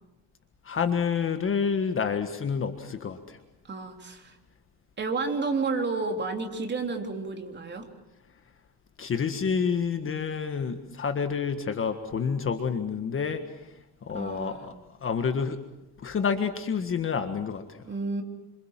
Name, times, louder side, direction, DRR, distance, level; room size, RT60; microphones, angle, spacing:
voice 1, 0.6-3.4 9.0-13.5 14.0-14.7 15.0-15.6 16.0-17.8, left 6 dB, 25° left, 7 dB, 1.6 m, -28 dB
voice 2, 3.6-4.4 5.0-7.9 14.1-14.7 17.8-18.2, right 4 dB, 20° right, 4 dB, 3.6 m, -31 dB
28.0 x 26.5 x 7.5 m, 0.94 s
cardioid pair, 140°, 48 cm